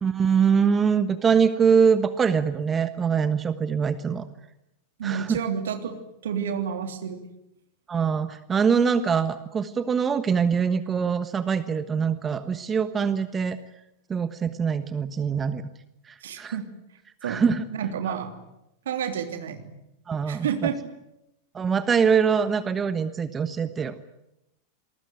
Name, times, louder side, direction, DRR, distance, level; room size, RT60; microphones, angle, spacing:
voice 1, 0.0-4.3 5.0-5.4 7.9-13.6 14.1-15.6 16.1-16.6 17.2-17.6 18.1-18.2 20.1-20.7 21.5-23.9, right 6 dB, 20° right, 12 dB, 1.3 m, -23 dB
voice 2, 5.0-6.0 6.2-7.3 16.2-16.6 17.2-18.3 18.8-19.7 20.3-20.8, right 8 dB, 60° right, 7 dB, 3.2 m, -30 dB
28.0 x 20.5 x 9.4 m, 0.87 s
figure-of-eight pair, 90°, 0 cm